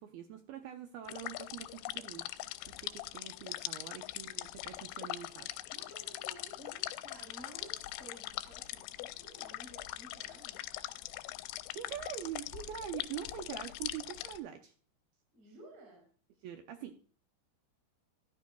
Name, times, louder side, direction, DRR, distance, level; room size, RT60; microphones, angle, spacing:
voice 1, 0.0-2.3 2.7-5.5 11.7-14.7 16.4-17.0, right 10 dB, 80° right, 6 dB, 2.2 m, -44 dB
sound 1, 1.1-14.4, left 16 dB, 80° left, 2.6 m, -42 dB
voice 2, 5.7-10.6 15.3-16.1, right 1 dB, 45° right, 2 dB, 5.0 m, -54 dB
15.0 x 11.0 x 2.3 m, 0.40 s
omnidirectional pair, 5.1 m